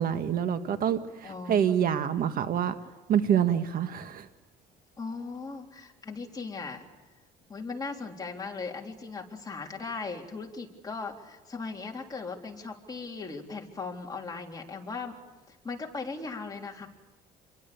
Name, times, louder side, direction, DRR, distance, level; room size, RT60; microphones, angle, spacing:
voice 1, 0.0-2.7 3.1-4.3, right 9 dB, 60° right, 9 dB, 1.7 m, -26 dB
voice 2, 1.2-1.7 5.0-6.8 7.5-15.2 15.5-16.9, left 4 dB, 20° left, 0 dB, 3.7 m, -38 dB
29.0 x 23.0 x 7.0 m, 1.1 s
cardioid pair, 110°, 17 cm